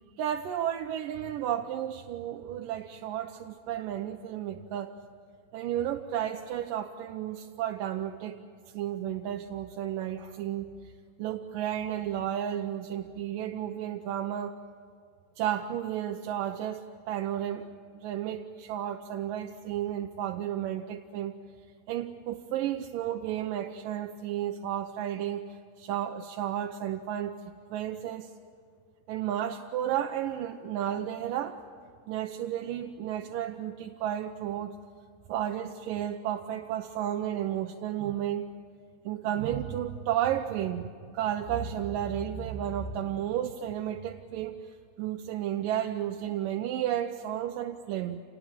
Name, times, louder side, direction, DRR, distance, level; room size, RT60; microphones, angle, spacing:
voice 1, 0.2-5.0 5.5-8.4 8.7-10.7 11.2-14.6 15.4-17.7 17.9-21.4 21.9-27.4 27.7-28.3 29.1-31.6 32.1-34.7 35.3-38.5 39.1-40.9 41.1-44.6 45.0-48.2, right 10 dB, 85° right, 3 dB, 2.5 m, -32 dB
28.5 x 19.5 x 9.0 m, 2.2 s
omnidirectional pair, 3.9 m